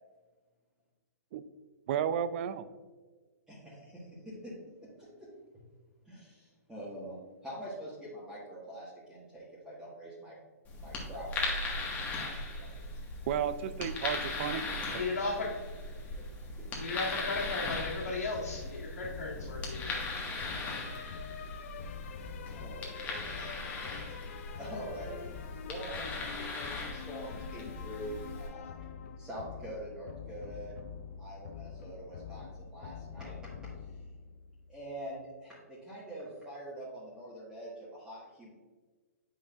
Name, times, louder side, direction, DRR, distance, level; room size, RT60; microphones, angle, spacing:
voice 1, 1.9-2.7 13.3-14.6 14.9-15.1, right 9 dB, 45° right, 14 dB, 0.4 m, -32 dB
voice 2, 3.5-4.5 5.0-5.3 6.0-7.2 7.4-10.3 10.8-11.8 12.2-12.3 12.6-12.8 22.4-23.5 24.6-25.2 25.7-28.8 29.2-30.7 31.2-33.4 34.7-38.5, right 1 dB, 5° right, -10 dB, 1.6 m, -45 dB
sound 1, 10.6-28.5, left 2 dB, 20° left, 1.4 m, -39 dB
voice 3, 14.9-15.5 16.8-20.0, left 3 dB, 75° left, -7 dB, 1.9 m, -35 dB
sound 2, 17.3-34.9, left 7 dB, 55° left, 0.4 m, -45 dB
8.2 x 5.7 x 2.5 m, 1.4 s
hypercardioid pair, 135°, 9 cm